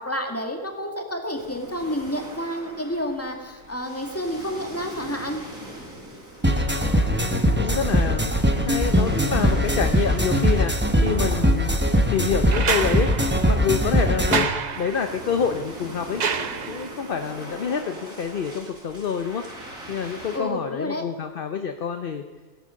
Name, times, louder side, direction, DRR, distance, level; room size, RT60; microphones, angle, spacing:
voice 1, 0.0-5.4 20.3-21.0, equal, 10° left, 3 dB, 1.9 m, -30 dB
sound 1, 1.3-20.4, right 1 dB, 65° right, 4.2 m, -42 dB
sound 2, 6.4-14.4, equal, 10° right, 0.9 m, -21 dB
voice 2, 6.6-7.1 7.6-11.8 12.1-13.1 13.5-16.2 16.7-19.4 19.9-22.2, left 7 dB, 45° left, 7 dB, 0.8 m, -27 dB
sound 3, 12.5-17.1 18.7-18.8, right 6 dB, 45° right, 0.6 m, -29 dB
17.0 x 11.5 x 6.3 m, 1.5 s
omnidirectional pair, 1.5 m